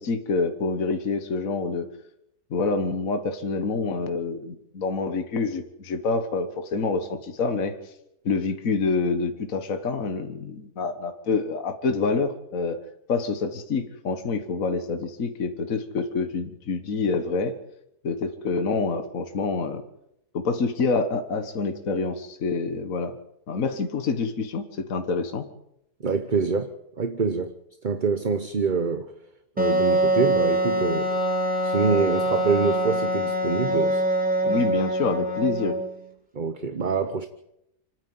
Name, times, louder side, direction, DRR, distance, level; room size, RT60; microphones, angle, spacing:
voice 1, 0.0-1.9 2.5-7.8 8.3-12.8 13.1-17.6 18.0-19.8 20.3-23.1 23.5-25.5 34.5-35.8, left 4 dB, 60° left, 1.8 m, -27 dB
voice 2, 26.0-27.5 27.8-29.1 29.6-31.1 31.6-34.0 34.4-34.5 36.3-37.3, right 5 dB, 35° right, 1.1 m, -25 dB
Wind instrument woodwind instrument, 29.6-36.0, right 1 dB, 5° right, 3.9 m, -24 dB
29.5 x 9.8 x 9.4 m
omnidirectional pair, 1.7 m